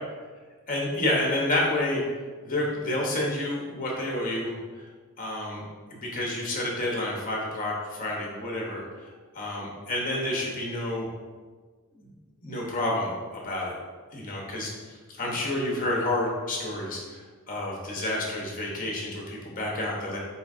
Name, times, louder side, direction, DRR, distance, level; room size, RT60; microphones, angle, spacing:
voice 1, 0.7-2.0 2.4-4.9 5.2-5.6 5.9-11.1 12.0-12.1 12.4-13.8 14.1-17.2 17.5-20.2, left 1 dB, 40° left, -2 dB, 0.7 m, -29 dB
4.4 x 2.7 x 2.5 m, 1.4 s
head